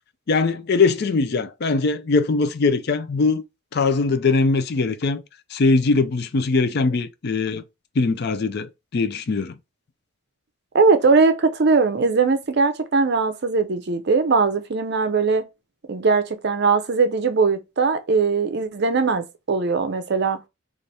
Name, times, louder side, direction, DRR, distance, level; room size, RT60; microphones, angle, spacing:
voice 1, 0.3-3.4 3.7-5.2 5.5-7.6 8.0-9.6, left 3 dB, 50° left, 0.4 m, -21 dB
voice 2, 10.7-15.5 15.9-20.4, right 4 dB, 50° right, 0.5 m, -20 dB
4.0 x 2.5 x 3.3 m
head